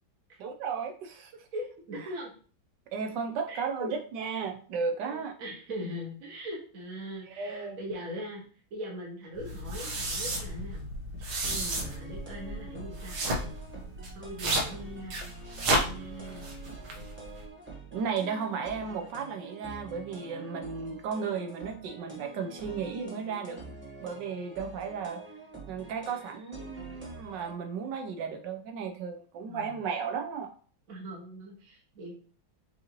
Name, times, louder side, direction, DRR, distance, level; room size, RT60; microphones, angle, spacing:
voice 1, 0.4-1.4 2.9-5.3 7.4-7.8 11.5-11.8 17.9-23.6 24.0-25.2 25.7-30.5, right 6 dB, 70° right, 5 dB, 1.1 m, -34 dB
voice 2, 1.5-2.3 3.5-3.9 5.0-8.4 8.7-10.9 11.2-11.3 11.7-13.1 14.1-15.2 15.8-16.5 29.5-29.8 30.9-32.1, equal, 50° right, -3 dB, 1.3 m, -40 dB
sound 1, 9.3-17.5, right 1 dB, 90° right, 1.9 m, -33 dB
sound 2, 11.8-27.5, right 3 dB, 10° right, 0.6 m, -47 dB
6.1 x 2.8 x 2.9 m, 0.41 s
omnidirectional pair, 2.2 m